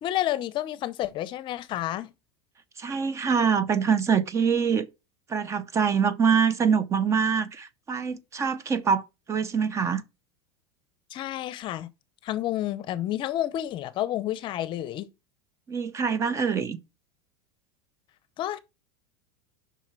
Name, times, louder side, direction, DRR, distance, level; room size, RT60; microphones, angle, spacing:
voice 1, 0.0-2.1 11.1-11.9 12.2-15.1 18.4-18.6, left 13 dB, 40° left, 0.7 m, -30 dB
voice 2, 2.8-4.9 5.3-9.0 9.3-10.0 15.7-16.8, right 6 dB, 20° right, 0.6 m, -24 dB
5.6 x 4.2 x 6.1 m
supercardioid pair, 130°, 13 cm